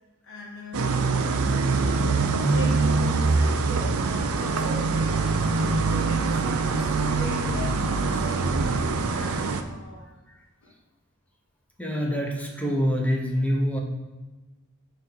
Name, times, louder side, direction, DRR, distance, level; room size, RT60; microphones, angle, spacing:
voice 1, 0.2-1.0 2.4-8.6 9.1-10.1 10.6-10.7, left 1 dB, 65° left, -2 dB, 1.3 m, -40 dB
sound 1, 0.7-9.6, right 3 dB, 70° right, 0.5 m, -24 dB
voice 2, 11.8-13.8, equal, 5° left, 1 dB, 0.9 m, -25 dB
6.7 x 3.8 x 5.4 m, 1.1 s
head